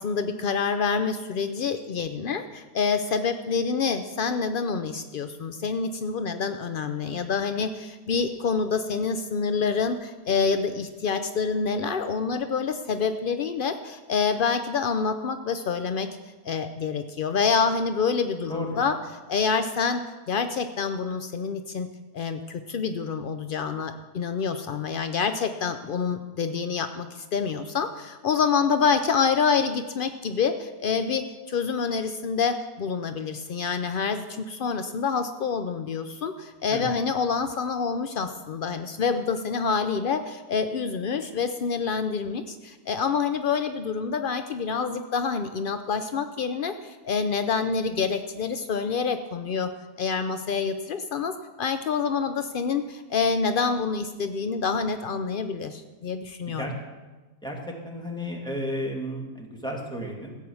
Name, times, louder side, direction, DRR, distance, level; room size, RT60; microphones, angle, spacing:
voice 1, 0.0-16.1 16.5-19.0 19.3-49.7 50.0-56.7, left 5 dB, 80° left, 9 dB, 0.4 m, -27 dB
voice 2, 18.5-18.8 36.7-36.9 56.6-56.7 57.4-60.3, equal, 5° left, -1 dB, 2.1 m, -33 dB
15.5 x 8.2 x 7.0 m, 1.2 s
omnidirectional pair, 1.7 m